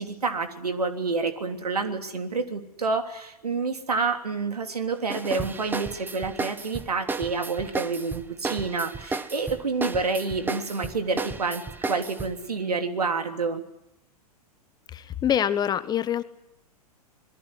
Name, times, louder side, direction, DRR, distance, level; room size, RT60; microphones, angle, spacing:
voice 1, 0.0-13.6, right 4 dB, 75° right, 7 dB, 3.3 m, -28 dB
sound 1, 5.1-12.4, right 3 dB, 10° right, 1.3 m, -33 dB
voice 2, 14.9-16.2, left 9 dB, 20° left, 13 dB, 1.4 m, -25 dB
27.0 x 22.0 x 9.9 m, 0.82 s
figure-of-eight pair, 105°, 20 cm